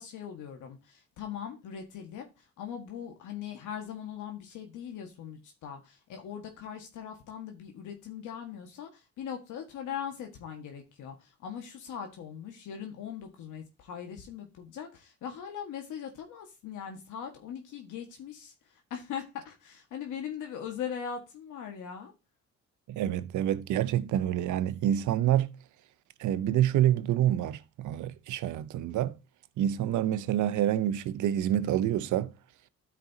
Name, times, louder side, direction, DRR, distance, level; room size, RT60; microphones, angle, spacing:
voice 1, 0.0-22.1, left 8 dB, 80° left, 1.7 m, -40 dB
voice 2, 22.9-25.5 26.2-29.2 29.6-32.3, right 11 dB, 75° right, 0.7 m, -27 dB
12.5 x 5.2 x 2.8 m
cardioid pair, 90°, 30 cm